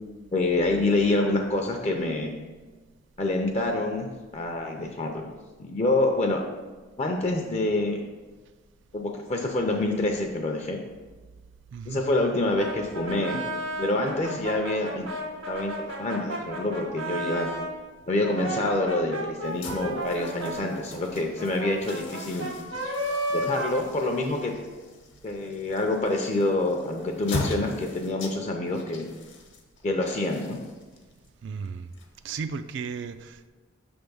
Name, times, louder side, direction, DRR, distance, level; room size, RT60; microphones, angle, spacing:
voice 1, 0.3-2.3 3.2-5.2 5.6-6.4 7.0-8.0 8.9-10.8 11.9-13.4 13.8-15.1 15.5-17.5 18.1-22.5 23.3-24.5 25.2-29.1 29.8-30.6, left 2 dB, 35° left, 3 dB, 0.5 m, -27 dB
voice 2, 11.7-12.1 25.6-25.7 31.4-31.9 32.2-33.5, right 5 dB, 60° right, 10 dB, 0.3 m, -35 dB
Brass instrument, 12.5-17.7 18.2-24.5, right 1 dB, 85° right, 1.7 m, -33 dB
sound 1, 19.4-32.5, left 2 dB, 65° left, 0.9 m, -40 dB
6.0 x 3.4 x 5.4 m, 1.3 s
head